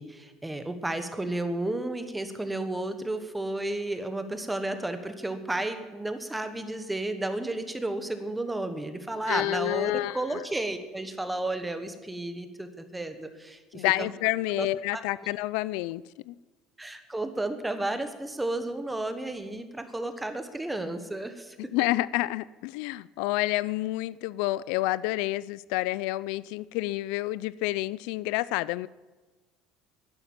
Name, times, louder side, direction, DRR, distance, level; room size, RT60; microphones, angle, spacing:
voice 1, 0.0-14.1 14.5-14.7 14.9-15.0 16.8-21.6, right 2 dB, 5° right, 8 dB, 1.2 m, -32 dB
voice 2, 9.3-10.4 13.7-16.3 21.7-28.9, left 17 dB, 75° left, 19 dB, 0.3 m, -29 dB
11.5 x 11.0 x 8.7 m, 1.3 s
cardioid pair, 160°, 0 cm